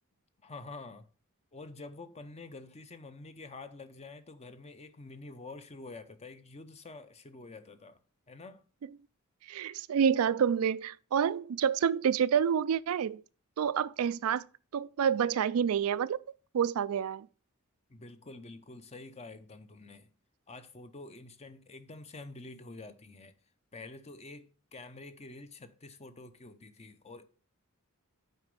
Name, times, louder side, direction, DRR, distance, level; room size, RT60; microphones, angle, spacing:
voice 1, 0.4-1.0 1.5-8.0 8.3-8.6 17.9-20.1 20.5-23.3 23.7-27.3, left 3 dB, 30° left, 0.7 m, -48 dB
voice 2, 9.5-13.2 13.6-14.4 14.7-16.2 16.5-17.3, right 8 dB, 70° right, 0.3 m, -28 dB
8.0 x 5.0 x 5.3 m
head